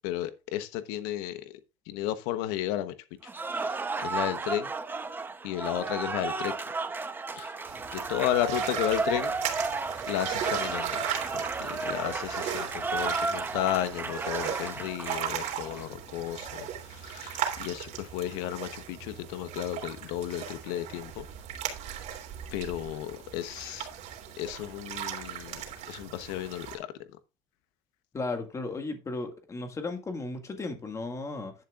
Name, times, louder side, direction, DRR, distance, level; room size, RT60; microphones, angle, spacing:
voice 1, 0.0-1.6 1.9-2.9 3.2-4.7 5.4-6.5 7.4-7.6 7.9-9.4 10.1-11.0 11.3-21.2 22.5-23.9 24.4-26.9, left 13 dB, 85° left, 1.1 m, -33 dB
Cheering / Applause, 3.2-15.8, right 4 dB, 15° right, 0.8 m, -33 dB
sound 1, 7.7-26.8, right 9 dB, 50° right, 3.1 m, -37 dB
voice 2, 28.1-31.5, left 3 dB, 20° left, 1.9 m, -35 dB
11.0 x 10.5 x 2.5 m
cardioid pair, 145°, 15 cm